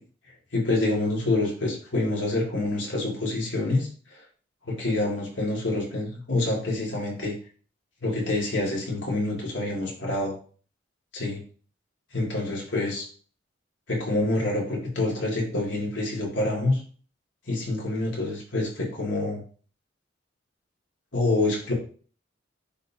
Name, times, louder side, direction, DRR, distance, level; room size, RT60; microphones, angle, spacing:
voice 1, 0.5-4.2 4.6-7.3 8.0-10.4 11.1-11.4 12.1-13.1 13.9-16.8 17.5-19.4 21.1-21.7, left 2 dB, 70° left, -2 dB, 2.5 m, -27 dB
9.7 x 3.8 x 2.9 m, 0.41 s
head